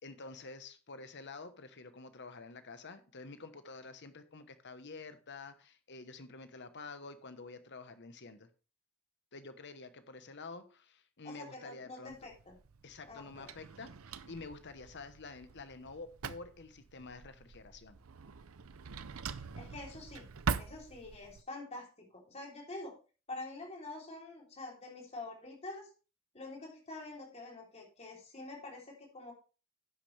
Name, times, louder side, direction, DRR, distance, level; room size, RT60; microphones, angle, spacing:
voice 1, 0.0-8.5 9.3-12.3 12.8-18.0, left 3 dB, 55° left, 10 dB, 1.1 m, -49 dB
voice 2, 11.2-12.6 13.0-13.5 19.6-20.3 20.6-22.9 23.3-25.9 26.3-29.3, left 2 dB, 30° left, -1 dB, 3.5 m, -46 dB
Drawer open or close, 12.1-21.4, right 5 dB, 75° right, 0.6 m, -43 dB
11.0 x 8.9 x 3.4 m, 0.35 s
head